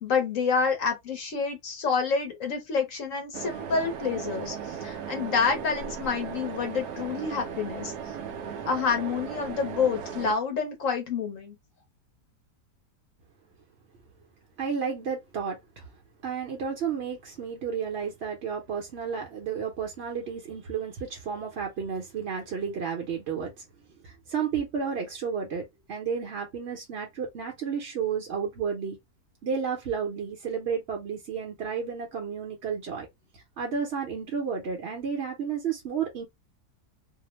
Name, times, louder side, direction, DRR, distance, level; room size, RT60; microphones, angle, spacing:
voice 1, 0.0-7.9 8.6-11.5, left 5 dB, 60° left, 1.0 m, -28 dB
sound 1, 3.3-10.3, right 7 dB, 75° right, 1.1 m, -37 dB
voice 2, 14.6-15.9 16.2-23.6 24.0-29.0 29.4-33.1 33.3-36.2, right 6 dB, 55° right, 0.8 m, -32 dB
2.8 x 2.1 x 2.9 m
omnidirectional pair, 1.7 m